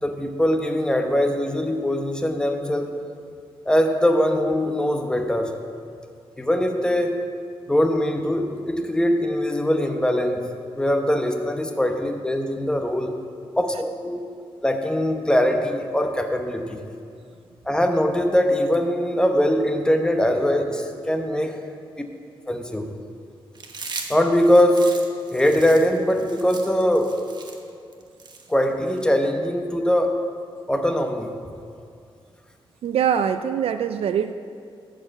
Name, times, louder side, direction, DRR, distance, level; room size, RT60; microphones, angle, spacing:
voice 1, 0.0-2.9 3.7-5.5 6.4-7.2 7.7-10.5 10.8-13.2 13.6-14.2 14.6-16.8 17.7-21.6 22.5-22.9 24.1-24.9 25.3-27.1 28.5-30.1 30.7-31.3, equal, 10° left, 4 dB, 0.9 m, -21 dB
Chewing mastication, 23.6-29.0, right 4 dB, 50° right, 1.1 m, -38 dB
voice 2, 32.8-34.3, right 8 dB, 90° right, 9 dB, 0.4 m, -23 dB
13.0 x 4.9 x 7.7 m, 2.3 s
wide cardioid pair, 120°, 10 cm